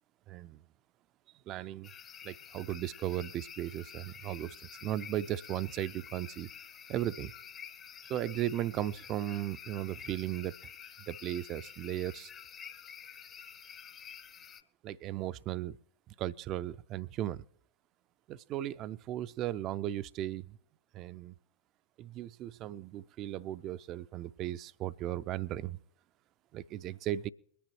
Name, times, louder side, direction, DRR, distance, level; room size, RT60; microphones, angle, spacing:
voice 1, 0.3-0.6 1.5-1.9 2.2-4.6 4.8-6.5 6.9-7.3 8.1-10.6 11.0-12.3 14.8-15.8 16.2-17.4 18.3-20.6 20.9-21.3 22.0-25.8 26.5-27.3, right 13 dB, 35° right, 0.4 m, -36 dB
sound 1, 1.8-14.6, left 8 dB, 25° left, 0.7 m, -49 dB
22.5 x 10.0 x 3.0 m
figure-of-eight pair, 90°, 0 cm